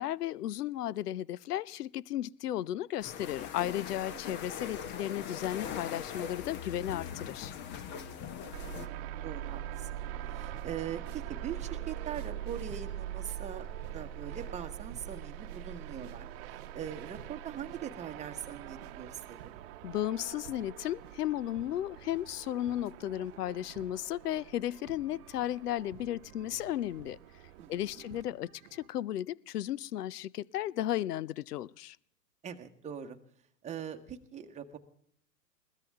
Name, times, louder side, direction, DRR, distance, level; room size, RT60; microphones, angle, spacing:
voice 1, 0.0-7.5 19.8-27.2 27.7-32.0, left 12 dB, 75° left, 0.6 m, -34 dB
sound 1, 3.0-8.9, left 7 dB, 25° left, 0.8 m, -41 dB
voice 2, 4.1-4.4 7.9-8.7 9.2-10.0 10.2-13.7 13.9-19.5 27.6-28.0 32.4-33.2 33.6-34.8, right 8 dB, 15° right, 1.2 m, -42 dB
sound 2, 8.5-28.2, right 11 dB, 40° right, 1.0 m, -43 dB
sound 3, 10.3-28.9, right 11 dB, 65° right, 1.0 m, -55 dB
21.0 x 16.0 x 3.6 m
hypercardioid pair, 110°, 48 cm